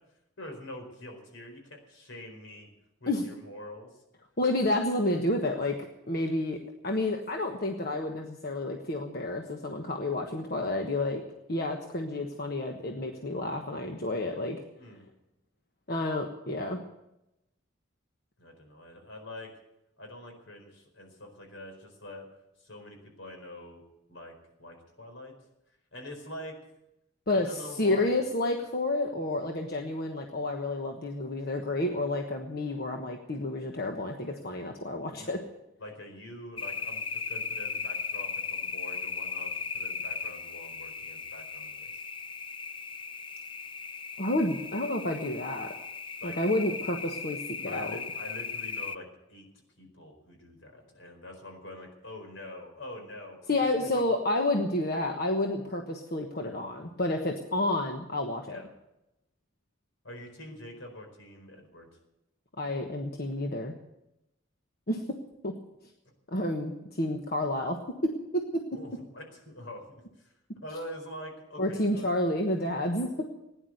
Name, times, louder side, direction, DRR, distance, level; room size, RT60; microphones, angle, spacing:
voice 1, 0.4-2.7 3.0-3.9 14.8-15.0 18.4-19.5 20.0-22.3 22.6-23.8 24.1-24.3 24.6-25.3 25.9-26.5 27.3-28.1 35.1-35.4 35.8-42.0 46.2-46.4 47.7-49.5 49.8-54.0 58.5-58.7 60.0-61.9 68.7-70.3 70.6-72.1, left 1 dB, 80° left, 3 dB, 4.6 m, -45 dB
voice 2, 4.4-5.7 6.1-6.6 6.8-11.2 11.5-14.6 15.9-16.8 27.3-27.5 27.8-35.4 44.2-45.7 46.2-47.9 53.5-58.6 62.6-63.7 64.9-65.0 65.4-65.5 66.3-67.8 68.3-68.4 71.6-73.1, left 1 dB, 50° left, 2 dB, 1.3 m, -30 dB
sound 1, 36.6-49.0, left 5 dB, 25° left, 0.5 m, -37 dB
17.0 x 10.5 x 7.9 m, 0.89 s
head